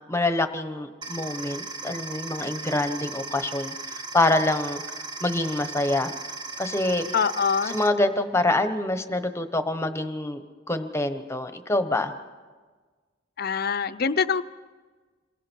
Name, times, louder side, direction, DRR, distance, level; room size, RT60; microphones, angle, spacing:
voice 1, 0.1-4.8 5.2-6.1 6.6-7.0 7.7-10.4 10.7-12.1, left 2 dB, 15° left, 9 dB, 1.1 m, -26 dB
sound 1, 1.0-7.9, right 3 dB, 20° right, 1.4 m, -37 dB
voice 2, 7.1-7.8 13.4-14.4, left 6 dB, 50° left, 12 dB, 0.7 m, -24 dB
27.5 x 22.0 x 4.6 m, 1.4 s
head